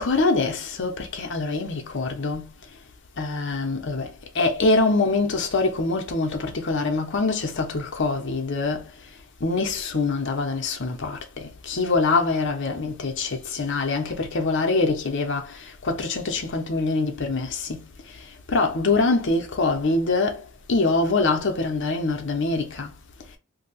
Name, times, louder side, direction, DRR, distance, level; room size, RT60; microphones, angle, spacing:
voice 1, 0.0-2.5 3.2-8.9 9.4-17.9 18.5-22.9, left 3 dB, 60° left, 0.8 m, -24 dB
2.7 x 2.3 x 4.0 m
head